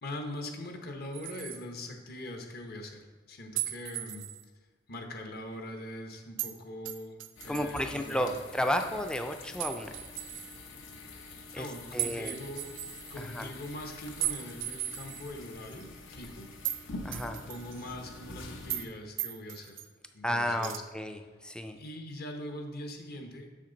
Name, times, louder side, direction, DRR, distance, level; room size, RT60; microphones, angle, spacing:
voice 1, 0.0-4.2 4.9-8.4 11.3-12.7 13.1-16.5 17.3-19.8 20.1-20.8 21.8-23.5, left 1 dB, 55° left, 4 dB, 1.0 m, -42 dB
sound 1, 1.1-1.6 3.6-4.4 6.4-6.6 6.9-8.1 9.6-10.6 12.0-13.2 14.2-15.3 15.7-15.8 16.6-16.8 17.1-18.0 18.7-18.9 19.2-19.9 20.6-20.8, right 13 dB, 70° right, 0.5 m, -37 dB
sound 2, 7.4-18.9, left 3 dB, 75° left, 0.9 m, -46 dB
voice 2, 7.5-9.9 11.5-11.7 11.9-12.4 13.2-13.5 17.0-17.4 20.2-21.8, equal, 5° left, 6 dB, 0.4 m, -32 dB
7.4 x 6.3 x 4.0 m, 1.4 s
head